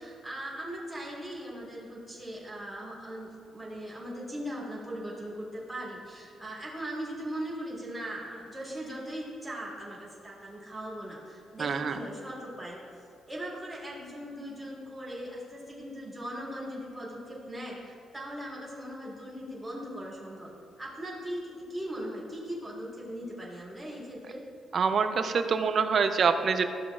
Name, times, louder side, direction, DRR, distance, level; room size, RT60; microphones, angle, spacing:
voice 1, 0.0-12.8 13.3-20.5 20.8-21.4 21.7-24.4, equal, 5° right, -7 dB, 2.0 m, -39 dB
voice 2, 11.6-12.0 24.7-26.7, right 5 dB, 45° right, 9 dB, 0.5 m, -25 dB
13.0 x 7.3 x 2.4 m, 2.5 s
cardioid pair, 150°, 0 cm